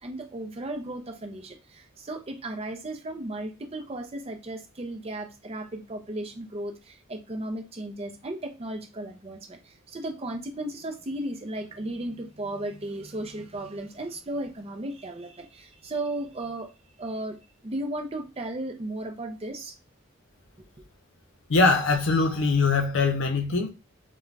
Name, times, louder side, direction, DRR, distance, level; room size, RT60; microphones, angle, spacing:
voice 1, 0.0-16.7 17.0-17.4 17.6-19.8, right 1 dB, 30° right, 0.5 m, -35 dB
voice 2, 21.5-23.7, left 3 dB, 65° left, 0.6 m, -22 dB
2.5 x 2.2 x 3.2 m
head